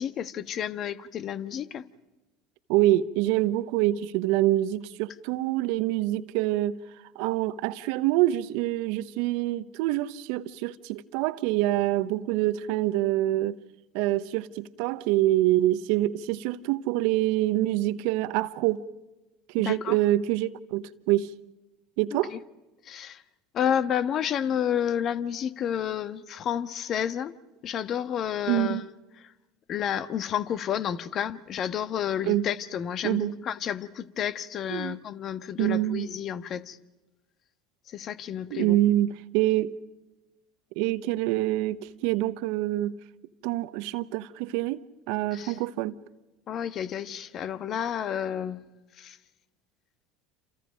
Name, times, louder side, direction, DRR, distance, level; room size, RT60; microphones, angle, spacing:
voice 1, 0.0-1.8 19.6-19.9 22.3-22.4 22.9-23.2 23.5-27.3 27.6-28.9 29.7-36.8 37.9-38.8 45.3-45.6 46.5-48.6 49.0-49.2, left 9 dB, 45° left, 1.3 m, -30 dB
voice 2, 2.7-6.8 7.1-13.6 13.9-18.8 19.5-21.3 22.0-22.4 28.5-28.9 32.3-32.5 33.0-33.4 34.7-35.0 35.6-36.1 38.5-39.7 40.8-41.8 42.0-42.9 43.4-45.9, right 15 dB, 65° right, 0.9 m, -26 dB
29.0 x 28.0 x 5.2 m
hypercardioid pair, 75°, 0 cm